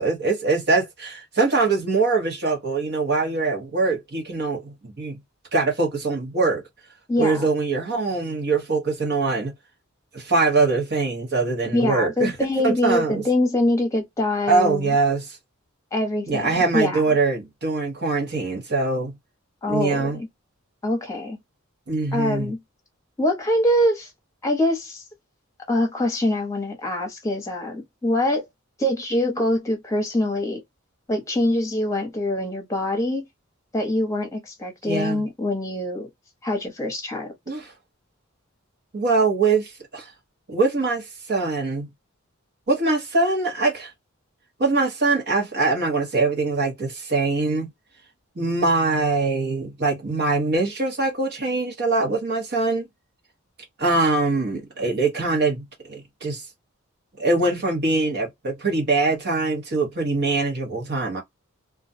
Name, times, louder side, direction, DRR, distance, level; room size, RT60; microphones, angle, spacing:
voice 1, 0.0-5.2 5.5-6.6 7.2-9.5 10.1-12.3 12.6-13.2 14.5-15.4 16.3-19.1 19.7-20.2 21.9-22.5 34.9-35.2 37.5-37.7 38.9-40.1 40.5-41.9 42.7-43.9 44.6-47.7 48.4-52.9 53.8-56.4 57.2-61.2, right 3 dB, 50° right, 1.0 m, -23 dB
voice 2, 7.1-7.5 11.7-14.9 15.9-17.0 19.6-20.3 20.8-21.4 22.1-22.6 23.2-24.1 24.4-25.0 25.7-28.5 28.8-30.6 31.1-33.2 33.7-36.1 36.4-37.3, left 1 dB, 15° left, 0.9 m, -24 dB
2.4 x 2.2 x 2.6 m
head